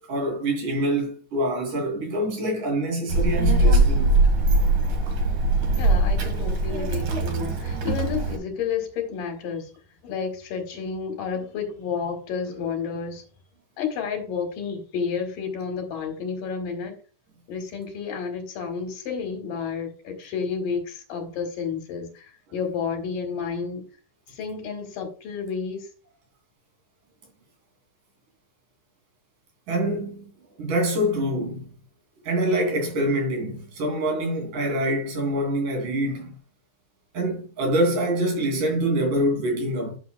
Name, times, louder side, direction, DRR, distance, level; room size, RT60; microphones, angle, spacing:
voice 1, 0.1-4.1 29.7-30.2 30.6-31.7 32.2-36.3 37.1-40.0, right 1 dB, 75° right, 4.4 m, -25 dB
Child speech kid speaking, 3.1-8.4, right 2 dB, 50° right, 1.7 m, -21 dB
voice 2, 5.8-9.7 10.0-13.2 13.8-16.9 17.5-23.8 24.3-25.9, left 6 dB, 85° left, 3.4 m, -31 dB
11.0 x 6.7 x 2.3 m
omnidirectional pair, 3.7 m